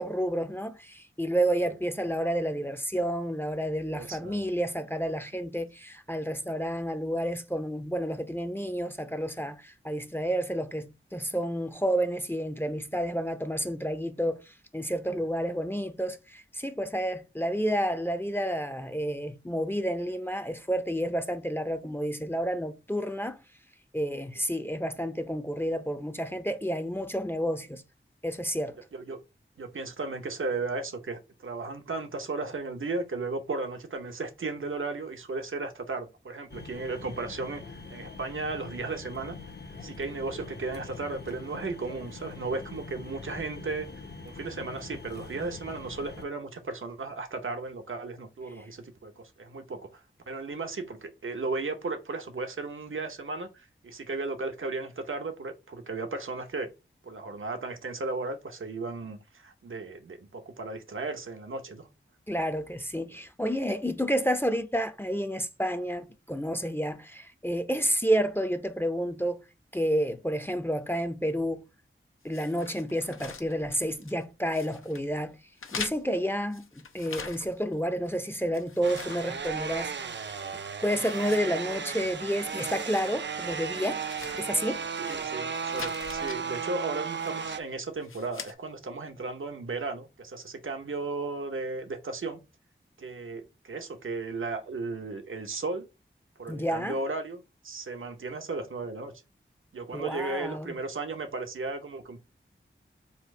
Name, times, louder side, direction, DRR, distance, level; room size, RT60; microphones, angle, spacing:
voice 1, 0.0-14.4 14.7-23.4 23.9-27.8 28.2-28.8 62.3-69.4 69.7-71.6 72.2-75.4 75.7-79.9 80.8-84.0 84.4-84.8 96.5-97.0 99.9-100.7, equal, 10° left, 0.5 m, -30 dB
voice 2, 3.9-4.4 28.9-29.2 29.6-39.4 39.8-43.9 44.2-56.7 57.0-61.9 85.0-92.4 93.0-95.8 96.4-99.1 99.7-102.2, right 3 dB, 75° right, 0.9 m, -35 dB
sound 1, 36.5-46.2, left 3 dB, 55° left, 0.8 m, -44 dB
sound 2, 72.3-74.2 74.5-75.1 75.6-77.7 78.1-80.0 80.3-80.4 80.8-82.0 82.3-83.1 83.4-83.5 84.0-85.2 85.5-86.4 87.1-87.5 88.0-88.5, left 5 dB, 85° left, 0.6 m, -43 dB
sound 3, 78.8-87.6, right 6 dB, 60° right, 0.5 m, -35 dB
4.3 x 2.5 x 4.8 m
wide cardioid pair, 75°, 21 cm